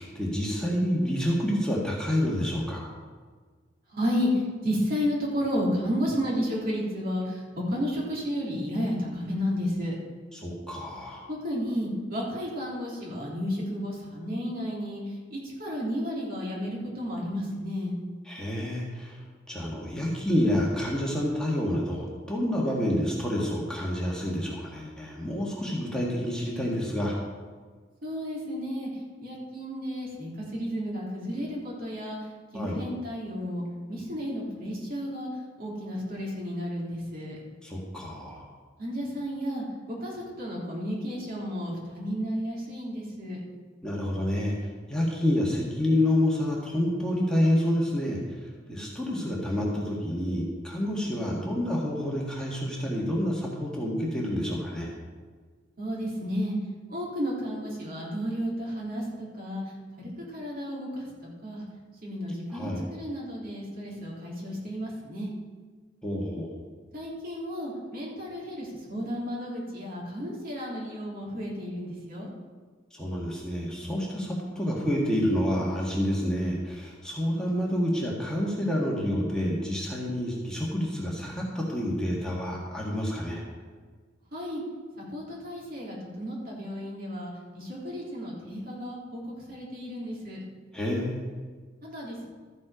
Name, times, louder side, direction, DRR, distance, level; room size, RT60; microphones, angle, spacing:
voice 1, 0.0-2.9 10.3-11.2 18.3-19.2 19.5-27.2 32.5-32.8 37.6-38.4 43.8-44.5 44.9-54.9 62.5-62.8 66.0-66.5 72.9-83.4 90.7-91.2, left 1 dB, 5° left, -4 dB, 1.8 m, -28 dB
voice 2, 3.9-9.9 11.3-18.0 28.0-28.9 29.2-32.2 32.5-33.6 33.9-35.3 35.6-37.4 38.8-43.4 48.7-48.9 55.8-56.6 56.9-59.6 60.0-61.1 61.4-61.7 62.0-65.3 66.9-72.3 84.3-84.6 85.0-90.4 91.8-92.3, equal, 50° right, -4 dB, 3.6 m, -32 dB
13.5 x 7.6 x 5.1 m, 1.5 s
head